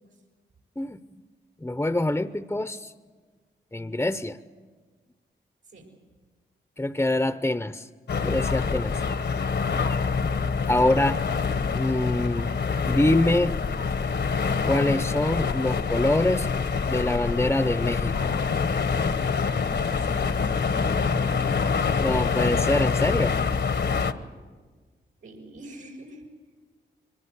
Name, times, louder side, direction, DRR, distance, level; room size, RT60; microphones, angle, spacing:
voice 1, 1.6-2.9 3.7-4.4 6.8-7.9 8.2-9.0 10.7-11.2 11.8-12.5 12.9-13.6 14.7-16.5 16.9-18.4 22.0-23.4, left 1 dB, 10° left, 11 dB, 0.7 m, -25 dB
sound 1, 8.1-24.1, left 5 dB, 65° left, 1.1 m, -26 dB
voice 2, 19.4-21.3 25.2-26.2, right 2 dB, 90° right, -1 dB, 5.9 m, -43 dB
24.0 x 20.0 x 8.2 m, 1.4 s
cardioid pair, 60°, 20 cm